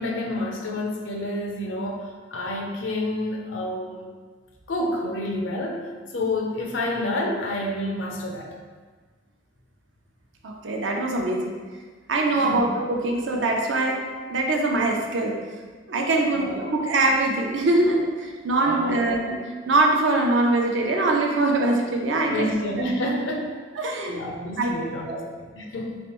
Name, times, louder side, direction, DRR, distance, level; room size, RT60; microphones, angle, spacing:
voice 1, 0.0-4.1 4.7-5.8 6.1-8.5 12.3-12.7 16.3-16.7 18.6-19.2 22.3-26.0, left 1 dB, 90° left, 1 dB, 0.6 m, -29 dB
voice 2, 10.4-11.6 12.1-15.4 15.9-22.6 23.8-24.2 24.6-25.2, right 2 dB, 75° right, 1 dB, 0.6 m, -23 dB
3.4 x 3.2 x 3.0 m, 1.5 s
head